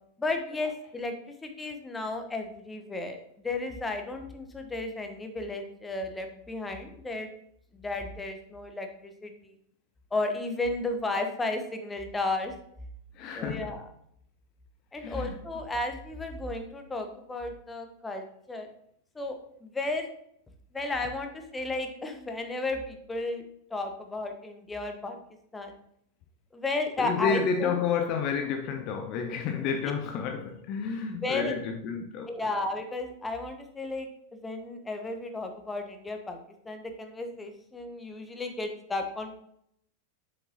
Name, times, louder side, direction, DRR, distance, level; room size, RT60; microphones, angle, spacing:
voice 1, 0.2-1.1 1.4-7.3 7.7-9.5 10.1-12.5 13.3-13.8 14.9-18.7 19.1-20.1 20.7-23.4 23.7-25.2 25.5-25.7 26.5-27.8 31.2-31.6 32.3-36.4 36.7-39.4, left 2 dB, 10° left, 1.0 m, -33 dB
voice 2, 13.2-13.8 15.0-15.4 27.0-32.3, left 6 dB, 40° left, 0.6 m, -30 dB
7.1 x 6.5 x 2.9 m
figure-of-eight pair, 90°, 0 cm